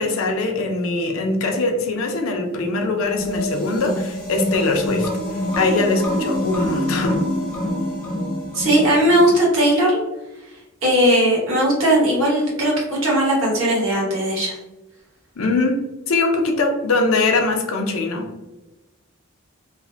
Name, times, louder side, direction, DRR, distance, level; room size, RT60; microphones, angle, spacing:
voice 1, 0.0-5.1 5.6-7.2 15.4-15.8 16.1-18.3, left 3 dB, 75° left, 3 dB, 0.5 m, -21 dB
sound 1, 3.0-9.4, left 1 dB, 5° left, 0.5 m, -26 dB
voice 2, 8.5-10.0 10.8-14.6, right 1 dB, 65° right, -3 dB, 1.0 m, -18 dB
3.2 x 2.1 x 2.5 m, 1.0 s
head